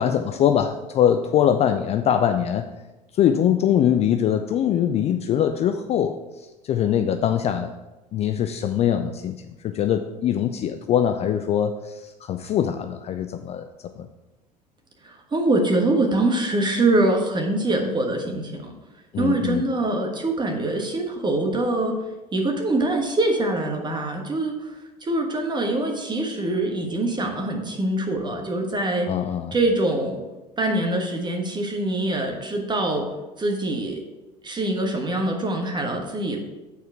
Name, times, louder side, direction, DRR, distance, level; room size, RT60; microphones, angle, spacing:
voice 1, 0.0-2.7 3.1-7.8 8.1-13.7 14.0-14.1 19.1-19.6 29.1-29.5, left 9 dB, 30° left, 8 dB, 0.4 m, -22 dB
voice 2, 15.0-18.7 19.2-21.9 22.3-29.1 29.5-30.2 30.6-33.1 33.4-34.0 34.4-36.4, right 2 dB, 20° right, 3 dB, 1.3 m, -24 dB
8.3 x 4.5 x 4.6 m, 1.1 s
figure-of-eight pair, 65°, 21 cm